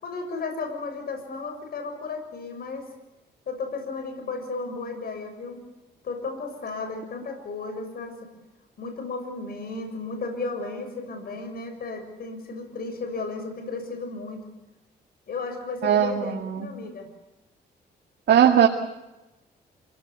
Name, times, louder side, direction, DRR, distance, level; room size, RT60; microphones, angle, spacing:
voice 1, 0.0-2.9 3.5-5.6 6.0-8.2 8.8-14.4 15.3-17.1, left 3 dB, 60° left, 5 dB, 7.0 m, -34 dB
voice 2, 15.8-16.7 18.3-18.7, right 9 dB, 75° right, 3 dB, 2.1 m, -19 dB
28.0 x 17.5 x 8.3 m, 1.0 s
cardioid pair, 85°, 18 cm